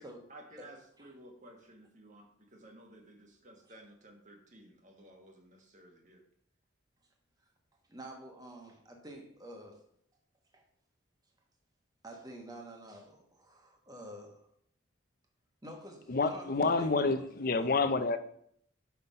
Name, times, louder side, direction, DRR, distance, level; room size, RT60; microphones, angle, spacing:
voice 1, 0.3-6.2, right 1 dB, 40° right, 3 dB, 1.3 m, -55 dB
voice 2, 7.9-9.9 10.5-10.6 12.0-14.5 15.6-17.0 17.5-17.7, right 1 dB, 20° right, 2 dB, 1.2 m, -48 dB
voice 3, 16.1-18.2, left 3 dB, 45° left, 10 dB, 0.5 m, -28 dB
5.8 x 5.8 x 5.3 m, 0.66 s
head